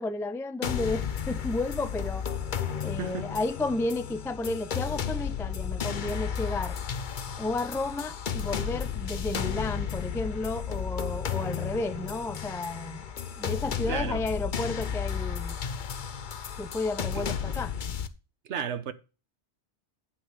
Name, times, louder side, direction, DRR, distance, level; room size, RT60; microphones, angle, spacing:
voice 1, 0.0-2.2 2.8-6.8 7.4-13.0 13.4-15.6 16.6-17.7, left 2 dB, 5° left, 0.3 m, -32 dB
sound 1, 0.6-18.1, left 8 dB, 50° left, 0.8 m, -33 dB
voice 2, 3.0-3.3 13.9-14.2 17.1-17.2 18.4-18.9, right 7 dB, 85° right, 1.2 m, -33 dB
9.3 x 6.2 x 4.7 m
omnidirectional pair, 1.2 m